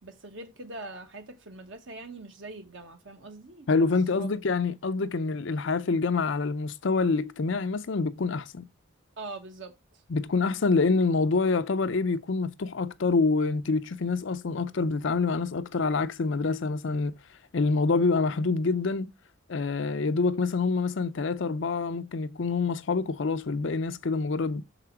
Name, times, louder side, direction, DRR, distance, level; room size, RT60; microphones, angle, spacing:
voice 1, 0.0-3.7 4.2-4.3 9.2-10.0, right 2 dB, 60° right, 1.2 m, -42 dB
voice 2, 3.7-8.7 10.1-17.1 17.5-19.1 19.5-24.6, left 4 dB, 60° left, 0.5 m, -26 dB
6.8 x 4.8 x 4.5 m
head